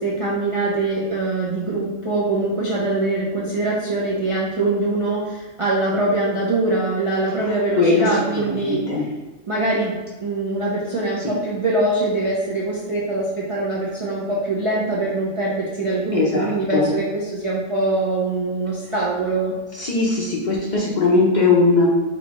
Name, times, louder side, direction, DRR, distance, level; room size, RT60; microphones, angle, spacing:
voice 1, 0.0-8.8 9.5-19.5, right 2 dB, 45° right, -6 dB, 0.4 m, -23 dB
voice 2, 7.5-9.1 11.2-11.3 16.1-16.9 19.7-21.9, left 3 dB, 50° left, -4 dB, 0.6 m, -20 dB
3.9 x 2.3 x 2.9 m, 1.2 s
omnidirectional pair, 1.3 m